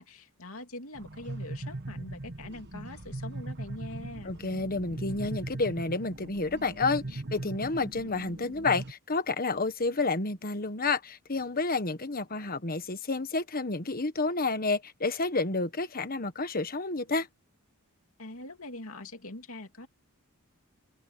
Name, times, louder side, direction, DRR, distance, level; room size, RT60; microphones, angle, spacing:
voice 1, 0.0-4.3 18.2-19.9, left 2 dB, 65° left, 3.1 m, -43 dB
sound 1, 0.9-8.9, right 2 dB, 50° right, 1.3 m, -39 dB
voice 2, 4.2-17.3, left 3 dB, 40° left, 1.4 m, -30 dB
head